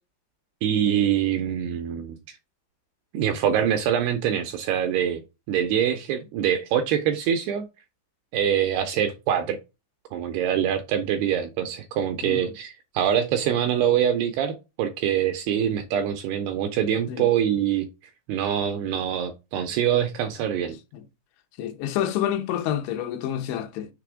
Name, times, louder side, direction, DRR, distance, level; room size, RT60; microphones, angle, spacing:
voice 1, 0.6-2.4 3.1-5.2 5.5-7.7 8.3-9.6 10.1-17.9 18.3-20.8, right 9 dB, 85° right, 2.3 m, -24 dB
voice 2, 12.2-12.5 17.1-17.3 20.9-21.0 21.6-23.9, left 10 dB, 85° left, 3.1 m, -28 dB
6.8 x 3.4 x 4.9 m
omnidirectional pair, 5.1 m